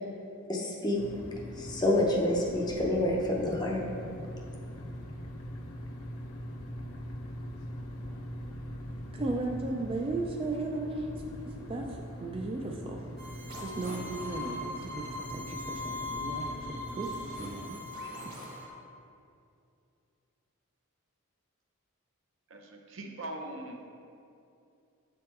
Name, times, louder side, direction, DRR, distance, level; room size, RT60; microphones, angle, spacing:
voice 1, 0.5-1.0 1.6-3.8, left 1 dB, 20° left, -2 dB, 0.6 m, -28 dB
sound 1, 0.9-17.5, equal, 75° left, 0.7 m, -42 dB
voice 2, 9.1-13.2 13.6-17.1 17.4-17.8 18.2-18.4, right 2 dB, 25° right, 1 dB, 0.3 m, -36 dB
sound 2, 13.2-18.7, left 1 dB, 40° right, 1.1 m, -40 dB
voice 3, 22.5-23.8, right 1 dB, 60° right, 2 dB, 0.7 m, -41 dB
7.6 x 3.5 x 4.3 m, 2.6 s
head